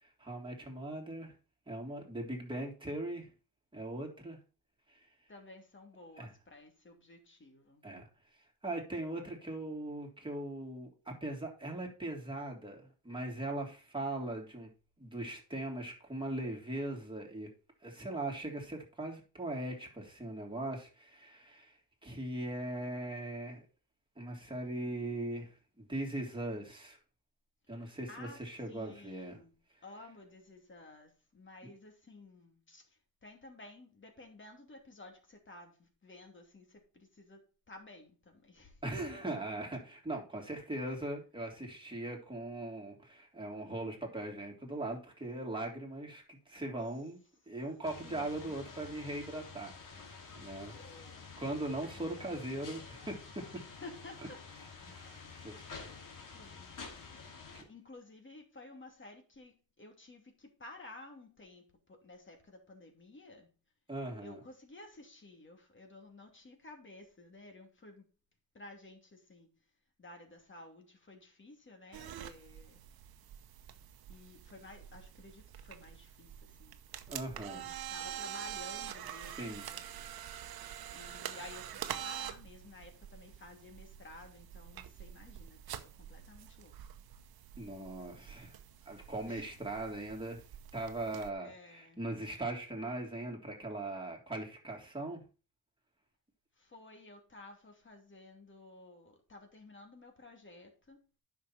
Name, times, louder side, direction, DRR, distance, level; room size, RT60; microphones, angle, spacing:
voice 1, 0.0-1.3 1.7-3.3 3.7-4.4 4.9-5.0 6.2-6.3 7.8-8.0 8.6-14.7 15.0-17.5 17.8-23.6 24.2-27.0 27.7-29.4 38.8-47.2 47.5-50.7 51.4-53.2 54.8-55.6 57.5-57.7 63.9-64.4 77.1-77.6 79.2-79.7 87.5-88.6 88.8-90.4 90.7-95.2, right 1 dB, 15° right, 3.2 m, -40 dB
voice 2, 5.3-7.9 27.7-29.5 29.8-38.8 48.0-48.6 50.7-51.2 51.9-52.6 53.5-54.5 55.5-56.1 56.3-56.8 57.7-63.5 64.2-68.1 68.5-69.5 70.0-72.8 74.1-76.8 77.5-80.1 80.9-86.8 89.3-89.5 91.4-92.0 96.6-101.2, left 2 dB, 35° left, 2.7 m, -54 dB
sound 1, 47.8-57.6, left 5 dB, 60° left, 2.5 m, -50 dB
sound 2, 71.9-91.3, right 10 dB, 85° right, 0.9 m, -46 dB
10.0 x 6.2 x 4.4 m
cardioid pair, 105°, 36 cm